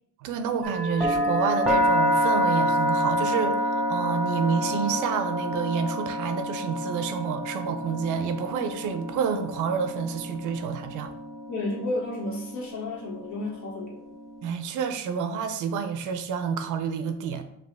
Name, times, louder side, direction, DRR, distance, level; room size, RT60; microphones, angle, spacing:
voice 1, 0.2-11.1 14.4-17.4, right 6 dB, 85° right, 9 dB, 0.6 m, -29 dB
sound 1, 0.6-14.5, equal, ahead, 0.9 m, -28 dB
voice 2, 11.5-14.0, left 2 dB, 70° left, -3 dB, 1.5 m, -32 dB
5.1 x 2.6 x 3.4 m, 0.77 s
cardioid pair, 90°, 30 cm